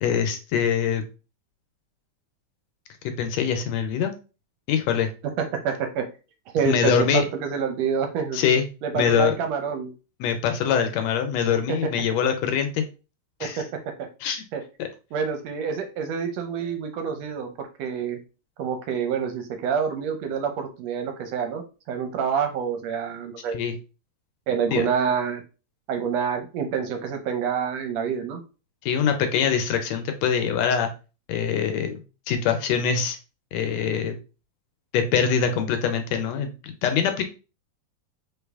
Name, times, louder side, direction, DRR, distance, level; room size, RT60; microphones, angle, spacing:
voice 1, 0.0-1.0 3.2-4.1 4.7-5.1 6.6-7.2 8.3-8.7 8.9-9.3 10.2-12.8 13.4-13.6 14.2-14.4 14.8-14.9 23.5-23.8 24.7-24.9 28.8-30.9 31.3-32.0 32.3-33.2 33.5-34.2 34.9-37.3, left 7 dB, 75° left, 6 dB, 1.7 m, -23 dB
voice 2, 5.4-6.1 6.5-8.4 8.8-9.9 13.4-14.1 14.5-14.6 15.1-18.2 18.6-23.6 24.5-25.4 25.9-28.4, right 6 dB, 75° right, 5 dB, 1.7 m, -27 dB
3.9 x 3.8 x 3.4 m, 0.33 s
omnidirectional pair, 3.3 m